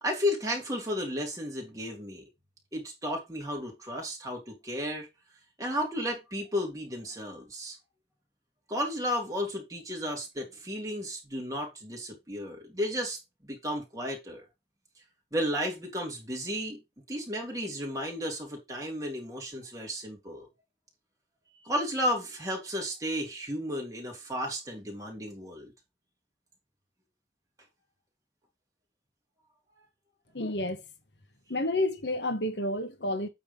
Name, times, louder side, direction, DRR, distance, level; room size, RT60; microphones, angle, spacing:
voice 1, 0.0-2.2 2.7-5.1 5.6-7.8 8.7-14.4 15.3-16.8 17.1-20.5 21.6-25.7, equal, 20° right, 3.1 m, -33 dB
voice 2, 30.3-30.8 31.5-33.3, left 1 dB, 80° left, 1.6 m, -30 dB
8.8 x 3.9 x 5.4 m
head